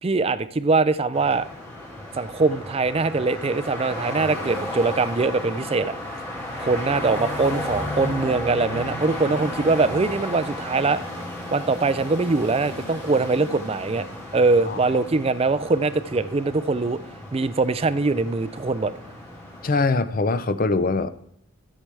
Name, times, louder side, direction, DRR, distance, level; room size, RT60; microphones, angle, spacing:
voice 1, 0.0-1.5 2.1-5.9 6.6-11.0 11.5-14.0 14.3-17.0 17.3-18.9, right 3 dB, 30° right, 14 dB, 0.4 m, -22 dB
sound 1, 1.1-19.9, left 1 dB, 10° left, 2.3 m, -34 dB
voice 2, 19.6-21.1, left 3 dB, 40° left, 12 dB, 0.5 m, -22 dB
13.0 x 7.6 x 3.4 m, 0.71 s
head